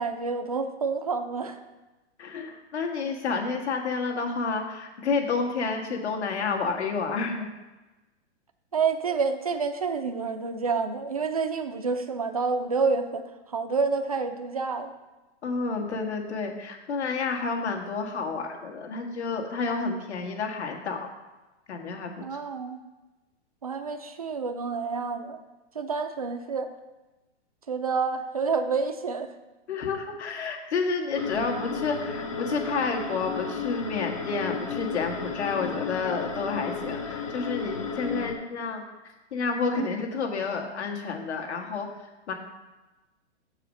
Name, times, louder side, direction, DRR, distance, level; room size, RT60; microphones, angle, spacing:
voice 1, 0.0-1.6 8.7-13.2 13.5-14.9 22.2-22.8 23.6-25.4 25.8-26.7 27.7-29.3 39.8-39.9, right 5 dB, 35° right, 7 dB, 0.4 m, -28 dB
voice 2, 2.2-7.5 15.4-21.1 21.7-22.2 29.7-38.8 39.3-41.9 42.3-42.4, left 4 dB, 70° left, 3 dB, 1.6 m, -30 dB
sound 1, 31.2-38.3, left 5 dB, 30° left, 0.5 m, -33 dB
7.2 x 4.8 x 6.4 m, 1.1 s
hypercardioid pair, 180°, 35 cm